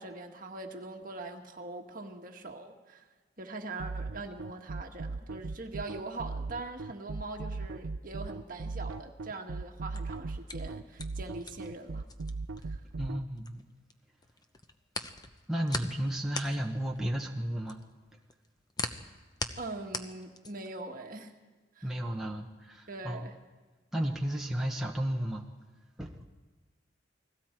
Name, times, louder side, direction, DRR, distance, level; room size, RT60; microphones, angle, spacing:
voice 1, 0.0-3.0 3.4-12.1 12.6-12.8 19.6-21.3 21.8-22.0 22.9-23.4, right 2 dB, 45° right, 3 dB, 1.7 m, -42 dB
sound 1, 3.8-13.2, right 3 dB, 80° right, 0.6 m, -37 dB
sound 2, 9.7-13.9 14.2-20.8, left 3 dB, 20° left, 0.8 m, -40 dB
voice 2, 13.0-13.7 15.5-17.8 21.8-23.2 23.9-25.4 26.0-26.1, right 1 dB, ahead, -1 dB, 1.1 m, -33 dB
29.0 x 20.5 x 4.5 m, 1.3 s
head